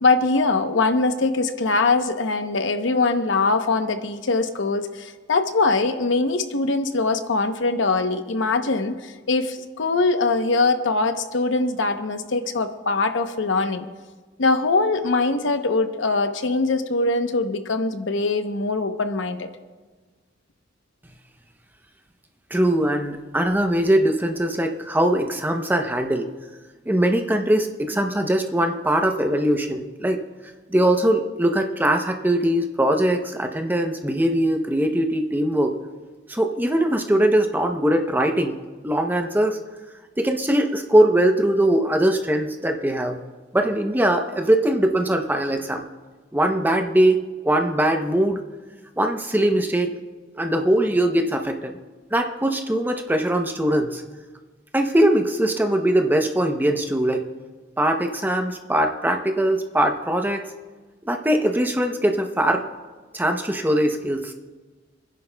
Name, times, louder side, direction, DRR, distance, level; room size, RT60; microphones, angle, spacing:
voice 1, 0.0-13.9 14.4-19.5, left 3 dB, 80° left, 8 dB, 0.8 m, -22 dB
voice 2, 22.5-26.3 26.9-30.2 30.7-35.7 36.3-38.6 38.8-39.6 40.2-43.2 43.5-45.8 46.3-48.4 49.0-49.9 50.3-51.8 52.1-54.0 54.7-57.3 57.8-60.4 61.1-62.6 63.1-64.3, right 1 dB, 10° right, 4 dB, 0.7 m, -21 dB
30.0 x 10.5 x 2.2 m, 1.3 s
head